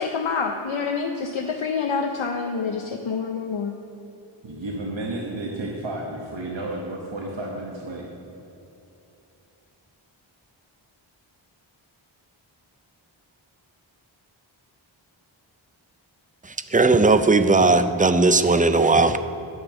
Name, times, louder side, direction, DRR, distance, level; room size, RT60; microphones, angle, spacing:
voice 1, 0.0-3.7, left 5 dB, 75° left, 3 dB, 0.7 m, -27 dB
voice 2, 4.4-8.1, right 2 dB, 70° right, -2 dB, 1.1 m, -32 dB
voice 3, 16.7-19.2, right 3 dB, 20° right, 11 dB, 0.4 m, -17 dB
9.7 x 5.2 x 6.9 m, 3.0 s
wide cardioid pair, 45°, 47 cm